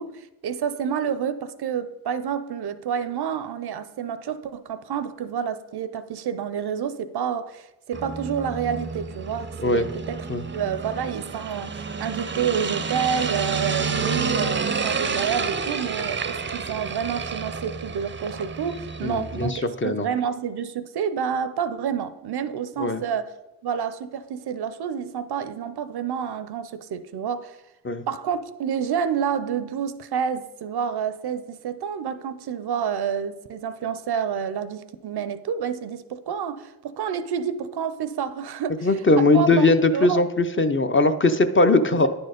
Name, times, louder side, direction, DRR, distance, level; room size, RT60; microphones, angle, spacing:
voice 1, 0.0-10.2 10.5-23.3 23.6-27.6 28.1-39.7 39.9-40.2 41.9-42.1, right 7 dB, 80° right, 0.5 m, -29 dB
sound 1, 7.9-19.5, right 5 dB, 30° right, 0.5 m, -29 dB
voice 2, 19.0-20.1 22.8-23.0 27.8-28.0 38.8-42.1, left 2 dB, 30° left, 0.6 m, -20 dB
9.4 x 4.3 x 5.1 m
cardioid pair, 55°, 38 cm